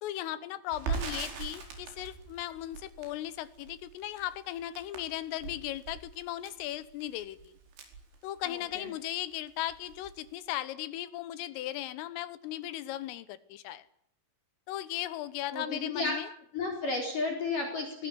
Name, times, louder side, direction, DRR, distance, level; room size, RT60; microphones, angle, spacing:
voice 1, 0.0-7.5 8.2-13.9 14.7-16.3, left 13 dB, 90° left, 16 dB, 3.9 m, -37 dB
Crackle, 0.7-8.8 9.1-9.3 9.6-10.3, right 5 dB, 70° right, 6.9 m, -41 dB
voice 2, 8.5-8.9 15.5-16.1 16.5-18.1, left 3 dB, 45° left, 2 dB, 5.5 m, -33 dB
22.0 x 20.5 x 10.0 m, 0.66 s
omnidirectional pair, 5.7 m